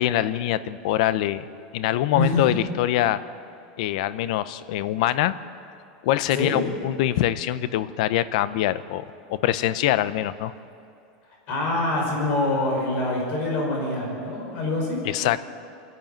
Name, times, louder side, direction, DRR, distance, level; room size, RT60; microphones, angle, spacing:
voice 1, 0.0-1.4 1.7-3.2 3.8-5.3 6.0-9.0 9.3-10.5 15.0-15.4, left 13 dB, 60° left, 14 dB, 0.7 m, -24 dB
voice 2, 6.3-6.6 11.5-15.0, left 2 dB, 40° left, -1 dB, 5.1 m, -25 dB
26.5 x 11.0 x 8.9 m, 2.6 s
supercardioid pair, 175°, 4 cm